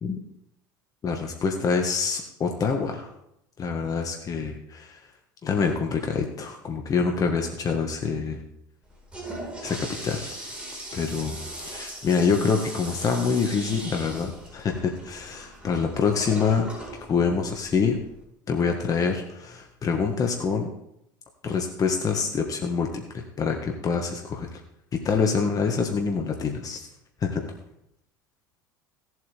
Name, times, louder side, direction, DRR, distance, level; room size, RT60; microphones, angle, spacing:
voice 1, 1.0-3.1 3.6-5.0 5.4-8.4 9.6-10.3 10.9-11.3 11.6-16.7 17.1-18.0 18.5-20.7 21.4-24.5 25.0-26.9 27.2-27.5, left 5 dB, 35° left, 3 dB, 1.6 m, -26 dB
Toilet flush, 8.8-18.2, right 1 dB, 10° right, 4.8 m, -39 dB
16.5 x 8.0 x 3.6 m, 0.78 s
hypercardioid pair, 75°, 11 cm